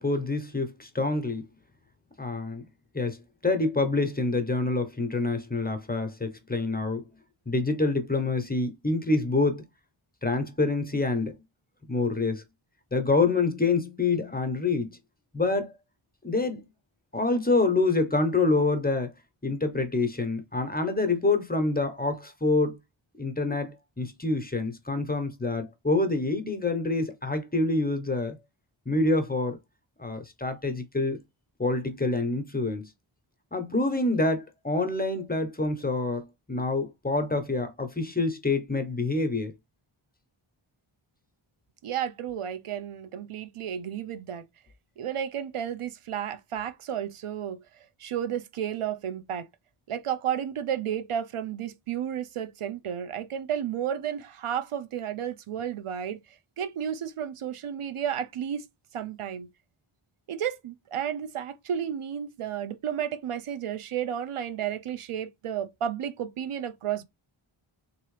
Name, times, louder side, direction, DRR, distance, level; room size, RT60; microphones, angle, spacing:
voice 1, 0.0-1.5 2.2-2.6 2.9-7.0 7.5-9.6 10.2-11.3 11.9-12.4 12.9-15.0 15.3-15.7 16.2-16.7 17.1-19.1 19.4-22.8 23.2-28.4 28.9-29.6 30.0-31.2 31.6-32.9 33.5-39.5, left 3 dB, 20° left, 0.9 m, -26 dB
voice 2, 41.8-44.4 45.0-49.5 49.9-56.2 56.6-58.6 58.9-59.5 60.3-67.0, right 9 dB, 80° right, 0.6 m, -32 dB
3.6 x 3.0 x 3.2 m
wide cardioid pair, 60°, 50 cm